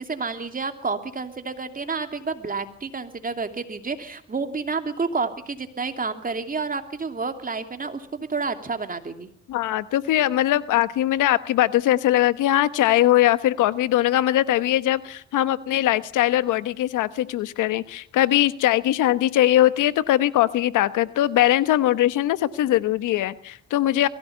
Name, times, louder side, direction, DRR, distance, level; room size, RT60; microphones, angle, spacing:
voice 1, 0.0-9.3, right 4 dB, 30° right, 7 dB, 2.9 m, -30 dB
voice 2, 9.5-24.1, left 13 dB, 85° left, 14 dB, 1.2 m, -21 dB
22.5 x 16.5 x 9.4 m, 0.63 s
cardioid pair, 90°, 30 cm